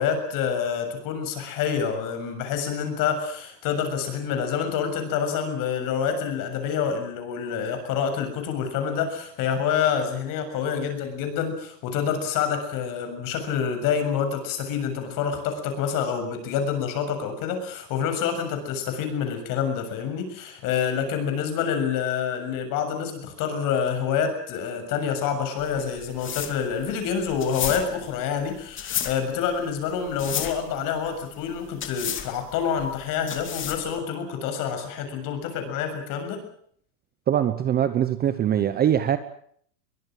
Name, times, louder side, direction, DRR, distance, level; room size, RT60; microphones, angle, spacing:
voice 1, 0.0-36.4, left 7 dB, 40° left, 7 dB, 7.1 m, -27 dB
sound 1, 25.6-34.0, left 9 dB, 25° left, 2.6 m, -33 dB
voice 2, 37.3-39.2, right 10 dB, 20° right, 12 dB, 0.9 m, -22 dB
23.5 x 21.0 x 7.6 m, 0.63 s
supercardioid pair, 150°, 49 cm